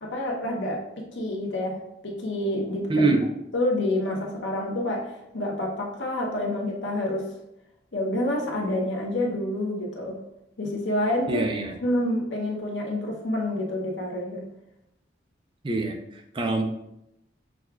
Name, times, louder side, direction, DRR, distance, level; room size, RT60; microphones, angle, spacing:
voice 1, 0.0-3.1 3.5-7.3 7.9-10.2 10.6-11.4 11.8-14.4, left 1 dB, 85° left, 0 dB, 0.8 m, -28 dB
voice 2, 2.9-3.2 11.3-11.8 15.6-16.6, right 3 dB, 25° right, 4 dB, 0.4 m, -25 dB
6.2 x 2.3 x 2.3 m, 0.84 s
head